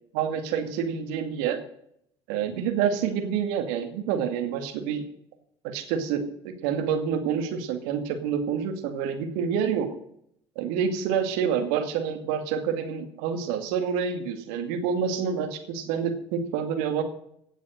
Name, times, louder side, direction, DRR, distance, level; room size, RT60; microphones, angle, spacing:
voice 1, 0.1-1.6 2.3-5.0 5.6-9.9 10.6-17.0, right 7 dB, 65° right, 6 dB, 2.2 m, -28 dB
16.5 x 8.0 x 6.6 m, 0.71 s
figure-of-eight pair, 60°, 15 cm